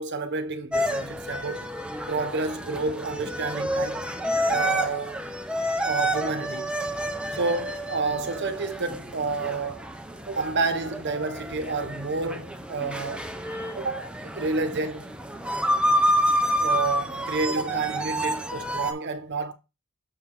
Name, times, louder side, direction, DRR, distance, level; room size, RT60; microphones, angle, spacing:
voice 1, 0.0-1.7 2.1-4.1 4.5-5.2 5.8-6.7 7.3-9.9 10.3-13.3 13.7-15.1 16.6-19.5, right 3 dB, 55° right, 1.0 m, -29 dB
sound 1, 0.7-18.9, equal, 5° right, 0.7 m, -29 dB
6.8 x 5.1 x 3.8 m
head